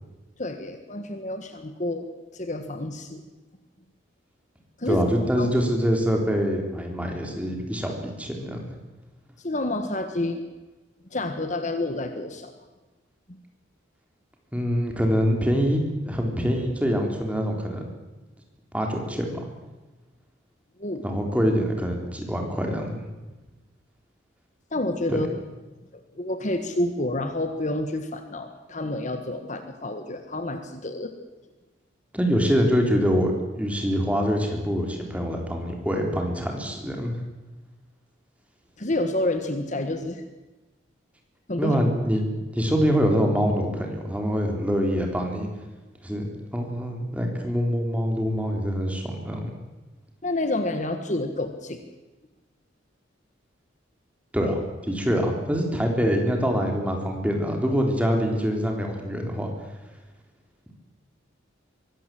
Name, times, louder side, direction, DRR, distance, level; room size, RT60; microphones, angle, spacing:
voice 1, 0.4-2.1 2.3-3.2 4.8-5.0 5.4-5.5 9.4-10.4 11.1-12.5 20.8-21.0 24.7-25.3 25.9-31.1 38.8-40.2 41.5-41.8 50.2-51.8, left 2 dB, 40° left, 7 dB, 1.5 m, -29 dB
voice 2, 4.9-8.6 14.5-17.9 18.7-19.4 21.0-23.0 25.1-25.2 32.1-33.3 33.6-37.2 41.6-42.2 42.5-45.5 46.0-46.3 46.5-49.5 54.3-59.5, equal, 5° right, 2 dB, 3.7 m, -25 dB
23.5 x 16.5 x 7.7 m, 1.2 s
head